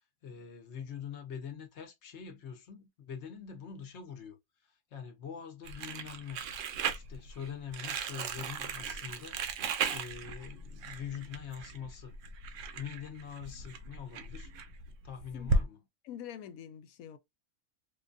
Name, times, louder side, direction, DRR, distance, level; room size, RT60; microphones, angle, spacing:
voice 1, 0.2-6.4 6.9-9.5 9.9-12.1 12.8-14.5 15.0-15.8, left 7 dB, 60° left, 0.9 m, -44 dB
Crumpling crinkling, 5.6-15.6, right 4 dB, 70° right, 0.9 m, -36 dB
voice 2, 15.3-15.7 16.0-17.2, left 9 dB, 85° left, 1.0 m, -46 dB
4.5 x 2.3 x 2.5 m
omnidirectional pair, 1.4 m